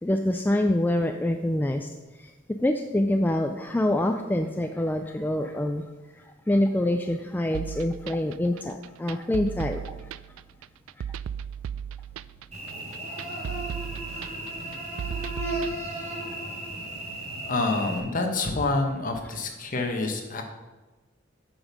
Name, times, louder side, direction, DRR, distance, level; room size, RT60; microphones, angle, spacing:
voice 1, 0.0-1.9 2.2-2.3 2.6-5.9 6.1-10.1, left 1 dB, 10° left, 5 dB, 0.4 m, -26 dB
sound 1, 7.5-15.8, right 8 dB, 85° right, 0.3 m, -36 dB
Cricket / Buzz, 12.5-18.0, right 1 dB, 35° right, 1.7 m, -35 dB
voice 2, 17.4-20.4, left 3 dB, 45° left, 3 dB, 1.3 m, -27 dB
8.8 x 5.4 x 6.1 m, 1.2 s
head